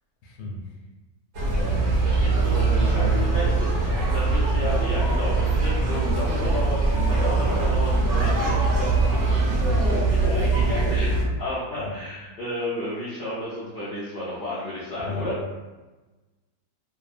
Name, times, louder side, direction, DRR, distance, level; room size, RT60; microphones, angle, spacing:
voice 1, 0.2-0.6 1.9-4.0 11.8-11.9 15.0-15.3, left 2 dB, 85° left, -1 dB, 1.1 m, -33 dB
sound 1, 1.3-11.2, right 3 dB, 60° right, 0.9 m, -22 dB
voice 2, 2.1-3.5 3.8-15.3, left 1 dB, 55° left, -9 dB, 0.6 m, -32 dB
2.8 x 2.1 x 2.4 m, 1.2 s
omnidirectional pair, 1.6 m